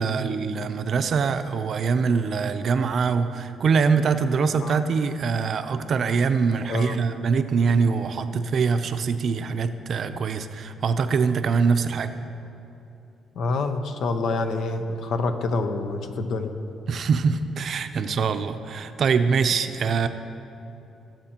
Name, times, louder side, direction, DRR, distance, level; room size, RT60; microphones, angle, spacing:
voice 1, 0.0-12.1 16.9-20.1, right 5 dB, 55° right, 9 dB, 0.5 m, -23 dB
voice 2, 13.4-16.5, left 3 dB, 75° left, 7 dB, 0.8 m, -27 dB
17.5 x 7.5 x 2.9 m, 2.9 s
cardioid pair, 90°, 0 cm